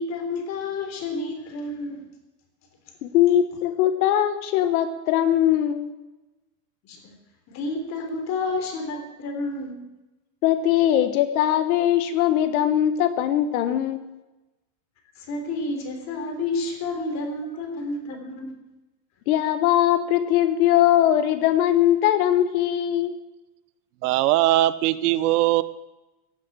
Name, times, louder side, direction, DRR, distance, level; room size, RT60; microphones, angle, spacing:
voice 1, 0.0-2.0 6.8-7.1 7.5-9.8 15.3-18.6, left 2 dB, 35° left, 5 dB, 3.5 m, -30 dB
voice 2, 3.0-5.9 10.4-14.1 19.3-23.1, left 11 dB, 60° left, 10 dB, 1.4 m, -21 dB
voice 3, 24.0-25.6, right 15 dB, 70° right, 16 dB, 0.9 m, -20 dB
16.0 x 8.1 x 8.7 m, 1.1 s
supercardioid pair, 150°, 48 cm